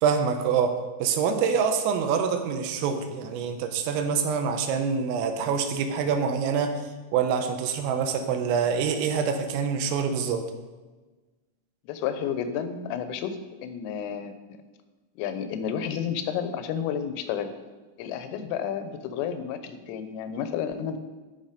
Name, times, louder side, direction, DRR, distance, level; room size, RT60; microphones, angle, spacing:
voice 1, 0.0-6.8 7.1-10.4, right 6 dB, 85° right, 6 dB, 3.6 m, -26 dB
voice 2, 11.9-14.3 15.2-17.5 18.0-21.0, left 8 dB, 85° left, 9 dB, 3.3 m, -31 dB
13.0 x 6.1 x 5.1 m, 1.2 s
omnidirectional pair, 5.8 m